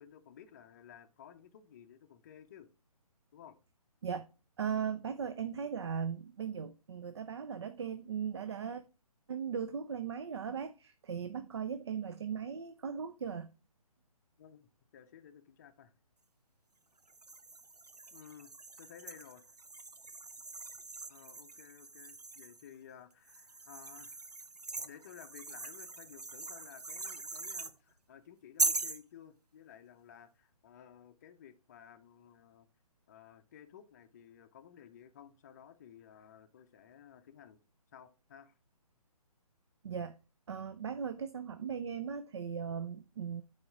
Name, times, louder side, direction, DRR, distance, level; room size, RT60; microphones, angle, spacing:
voice 1, 0.0-2.7 3.3-3.6 14.4-15.9 18.1-18.5 18.8-19.6 21.1-24.3 24.8-32.7 33.1-37.6 37.9-38.6, left 9 dB, 25° left, 0.6 m, -55 dB
voice 2, 4.6-8.8 9.3-13.5 39.8-40.1 40.5-43.4, right 7 dB, 45° right, 0.5 m, -38 dB
sound 1, 17.1-22.7 23.3-27.7 28.6-29.0, right 3 dB, 90° right, 0.6 m, -40 dB
9.7 x 4.3 x 3.6 m
figure-of-eight pair, 140°, 20 cm